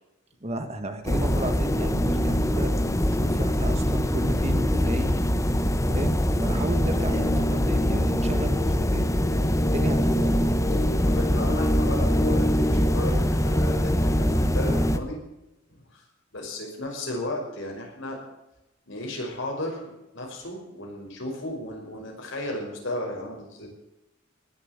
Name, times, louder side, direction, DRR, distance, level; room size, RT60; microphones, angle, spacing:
voice 1, 0.4-5.1 5.9-9.1 9.6-10.6, right 1 dB, 35° right, 8 dB, 1.7 m, -33 dB
sound 1, 1.1-15.0, equal, 15° left, 1.0 m, -23 dB
voice 2, 10.9-15.2 15.7-16.0 16.3-18.2 18.9-23.7, left 1 dB, 70° left, 0 dB, 5.7 m, -34 dB
19.5 x 7.7 x 8.3 m, 0.94 s
head